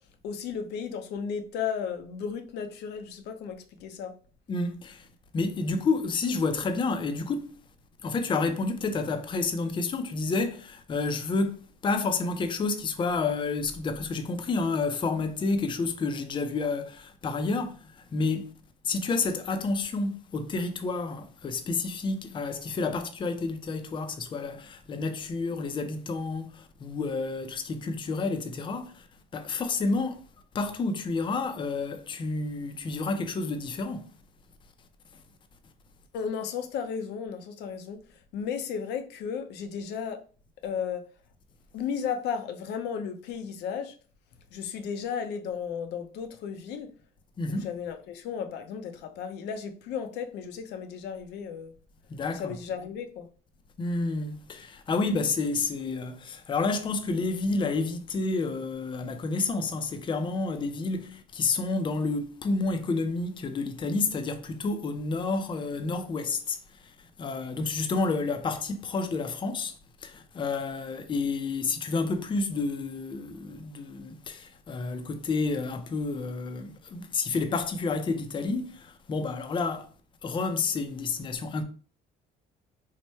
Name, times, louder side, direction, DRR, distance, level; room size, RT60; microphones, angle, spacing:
voice 1, 0.2-4.1 36.1-40.2 40.6-41.1 41.7-43.9 44.5-46.9 47.5-51.7 52.3-53.3, left 7 dB, 80° left, 0.6 m, -34 dB
voice 2, 4.5-5.1 5.3-7.5 8.0-18.5 18.8-29.1 29.3-30.2 30.5-34.1 47.4-47.7 52.1-52.6 53.8-69.8 70.0-79.9 80.2-81.6, left 3 dB, 30° left, 0.5 m, -30 dB
3.2 x 2.1 x 4.2 m
cardioid pair, 110°, 17 cm